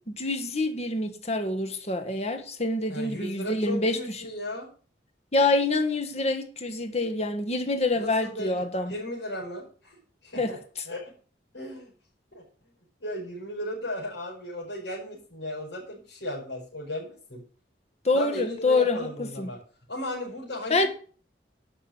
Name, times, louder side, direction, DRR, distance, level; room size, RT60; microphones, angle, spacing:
voice 1, 0.1-4.0 5.3-8.9 10.3-10.6 18.0-19.5 20.7-20.9, left 2 dB, 35° left, 1.6 m, -26 dB
voice 2, 2.9-4.7 7.9-10.0 10.2-10.6 10.9-11.1 11.5-11.9 12.3-12.4 13.0-17.4 18.1-19.6 19.9-20.9, left 1 dB, 85° left, 5.4 m, -36 dB
11.5 x 5.8 x 7.9 m
head